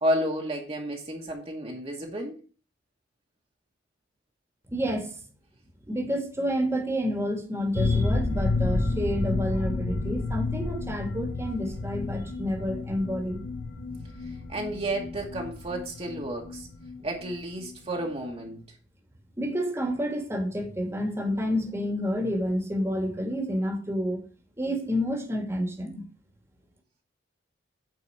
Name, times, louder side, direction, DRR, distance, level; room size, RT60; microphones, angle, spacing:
voice 1, 0.0-2.4 14.5-16.7 17.0-18.6, right 1 dB, 30° right, 1.3 m, -31 dB
voice 2, 4.7-5.1 5.9-13.4 19.4-24.2 24.6-26.0, equal, 15° right, 1.5 m, -29 dB
sound 1, 7.7-17.3 17.6-17.7 18.0-18.1, left 3 dB, 80° left, 1.5 m, -30 dB
8.7 x 4.1 x 6.3 m
head